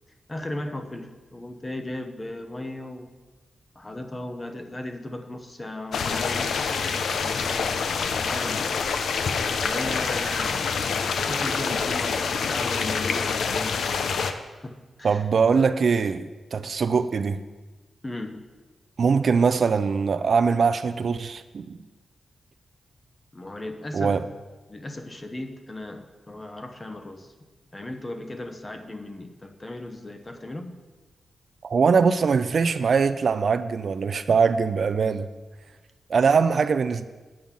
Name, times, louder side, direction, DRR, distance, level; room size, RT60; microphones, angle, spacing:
voice 1, 0.3-3.2 3.7-6.6 7.0-7.9 8.2-8.8 9.6-10.9 11.2-14.1 14.6-15.2 18.0-18.5 23.3-24.2 24.7-27.3 27.7-30.8, left 1 dB, 20° left, 6 dB, 0.9 m, -36 dB
sound 1, 5.9-14.3, left 5 dB, 80° left, 0.6 m, -26 dB
voice 2, 15.0-17.4 19.0-21.8 23.9-24.3 31.6-35.3 36.1-37.0, right 5 dB, 55° right, 12 dB, 0.4 m, -22 dB
8.6 x 5.5 x 7.4 m, 1.2 s
wide cardioid pair, 115°, 0 cm